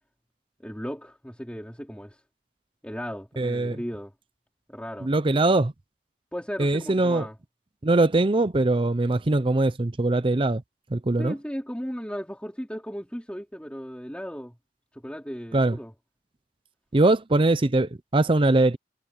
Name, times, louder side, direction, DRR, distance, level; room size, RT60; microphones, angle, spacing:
voice 1, 0.6-2.2 2.8-4.1 4.7-5.1 6.3-7.4 11.2-14.6 14.9-15.9, equal, 5° left, 3.9 m, -36 dB
voice 2, 3.4-3.8 5.0-5.7 6.6-7.3 7.8-10.6 10.9-11.3 15.5-15.8 16.9-18.8, right 2 dB, 30° right, 0.6 m, -22 dB
head